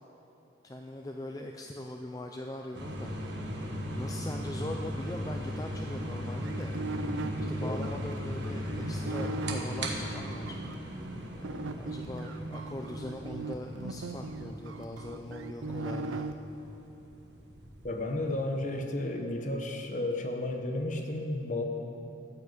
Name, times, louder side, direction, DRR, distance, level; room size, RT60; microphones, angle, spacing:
voice 1, 0.6-3.2 3.9-6.8 7.5-10.6 11.3-16.3, left 1 dB, 20° left, 2 dB, 0.4 m, -41 dB
sound 1, 2.7-18.7, equal, 60° right, 1.4 m, -38 dB
sound 2, 6.0-10.7 11.4-16.3, right 3 dB, 90° right, 0.5 m, -38 dB
voice 2, 17.8-21.6, left 1 dB, 40° left, 4 dB, 1.0 m, -32 dB
14.0 x 5.8 x 7.7 m, 2.9 s
head